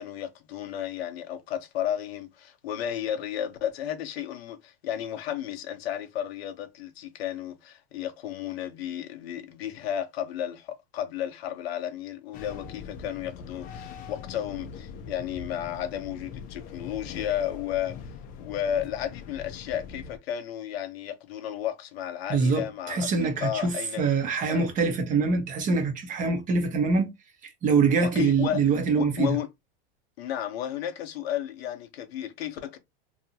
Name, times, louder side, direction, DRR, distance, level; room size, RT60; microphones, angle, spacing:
voice 1, 0.0-18.0 18.4-24.0 24.4-24.7 28.0-28.6 28.9-29.5 30.2-32.8, left 10 dB, 85° left, 0.7 m, -33 dB
sound 1, 12.3-20.2, left 6 dB, 30° left, 0.4 m, -42 dB
voice 2, 22.3-27.1 27.6-29.3, right 4 dB, 25° right, 0.7 m, -24 dB
2.8 x 2.3 x 2.7 m
supercardioid pair, 140°, 30 cm